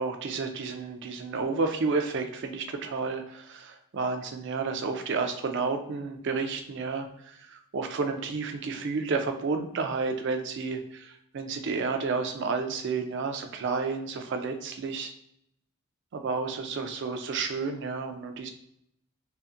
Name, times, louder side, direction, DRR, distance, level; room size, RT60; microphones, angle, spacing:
voice 1, 0.0-15.1 16.1-18.5, right 4 dB, 55° right, 6 dB, 0.4 m, -31 dB
2.6 x 2.5 x 2.4 m, 0.73 s
head